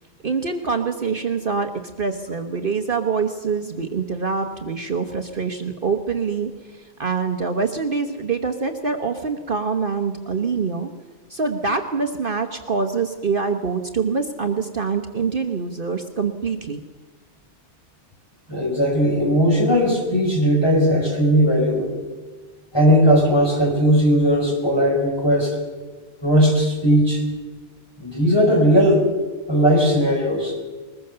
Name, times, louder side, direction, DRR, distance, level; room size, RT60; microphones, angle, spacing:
voice 1, 0.2-1.7 2.0-10.9 11.3-16.8, right 5 dB, 50° right, 5 dB, 1.3 m, -25 dB
voice 2, 18.5-21.9 22.7-25.6 26.2-27.2 28.0-29.0 29.5-30.5, equal, 20° left, 0 dB, 5.4 m, -18 dB
21.5 x 20.0 x 6.8 m, 1.4 s
omnidirectional pair, 1.2 m